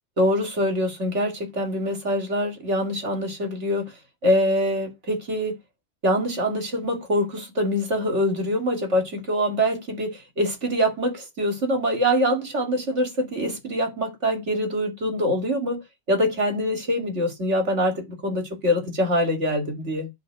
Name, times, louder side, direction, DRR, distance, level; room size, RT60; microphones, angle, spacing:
voice 1, 0.2-3.9 4.2-5.6 6.0-15.8 16.1-20.1, equal, 65° right, 2.6 m, -24 dB
11.0 x 4.0 x 7.6 m
omnidirectional pair, 1.3 m